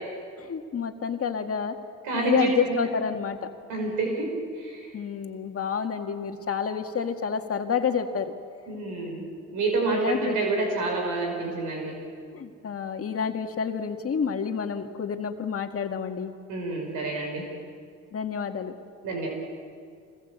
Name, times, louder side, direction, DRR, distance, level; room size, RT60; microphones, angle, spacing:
voice 1, 0.4-1.8 2.1-3.5 4.9-8.3 9.9-10.4 12.3-16.3 18.1-18.7, left 6 dB, 50° left, 5 dB, 2.0 m, -29 dB
voice 2, 2.0-2.8 3.7-4.3 4.6-4.9 8.7-9.2 9.5-11.9 16.5-17.5 19.0-19.3, right 2 dB, 90° right, 2 dB, 5.5 m, -27 dB
26.0 x 20.0 x 8.1 m, 2.1 s
cardioid pair, 90°, 30 cm